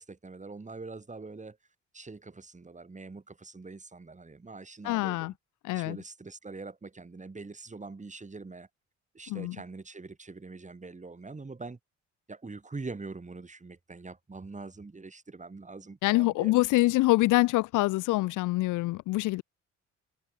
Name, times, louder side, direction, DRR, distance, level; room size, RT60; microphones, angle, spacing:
voice 1, 0.0-1.6 1.9-5.4 5.7-8.7 9.1-11.8 12.3-16.6, right 3 dB, 25° right, 7.4 m, -43 dB
voice 2, 4.8-5.3 5.6-6.0 9.3-9.6 16.0-19.4, left 19 dB, 85° left, 0.5 m, -25 dB
cardioid pair, 90°, 30 cm